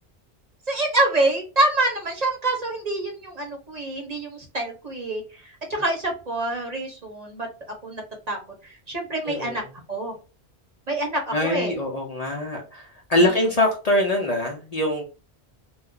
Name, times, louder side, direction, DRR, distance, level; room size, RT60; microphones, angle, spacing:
voice 1, 0.7-7.5 7.8-8.0 8.3-8.4 8.9-9.6 9.9-10.1 10.9-11.7, right 2 dB, 40° right, 1 dB, 0.8 m, -26 dB
voice 2, 9.2-9.6 11.3-15.0, left 1 dB, 45° left, 0 dB, 0.6 m, -23 dB
2.3 x 2.2 x 3.7 m, 0.34 s
omnidirectional pair, 1.1 m